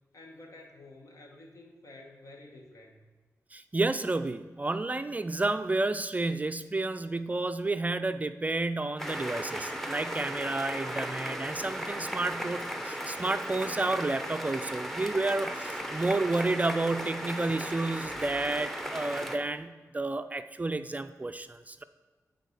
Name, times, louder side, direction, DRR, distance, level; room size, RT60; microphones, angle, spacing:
voice 1, 0.1-3.0, left 2 dB, 70° left, 1 dB, 1.5 m, -50 dB
voice 2, 3.5-21.8, right 2 dB, 25° right, 10 dB, 0.3 m, -31 dB
sound 1, 9.0-19.4, equal, 5° left, 0.8 m, -36 dB
10.5 x 4.1 x 5.4 m, 1.3 s
wide cardioid pair, 95°, 6 cm